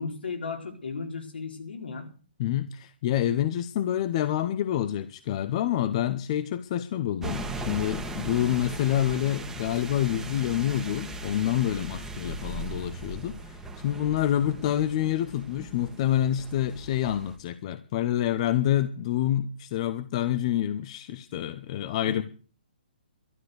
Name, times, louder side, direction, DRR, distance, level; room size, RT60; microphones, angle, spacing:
voice 1, 0.0-2.1 22.1-22.2, left 4 dB, 85° left, 3 dB, 4.4 m, -35 dB
voice 2, 2.4-13.6 13.8-22.2, left 11 dB, 40° left, 12 dB, 0.9 m, -27 dB
sound 1, 7.2-17.4, right 2 dB, 5° right, 1.5 m, -38 dB
12.5 x 11.5 x 6.7 m, 0.38 s
hypercardioid pair, 150°, 5 cm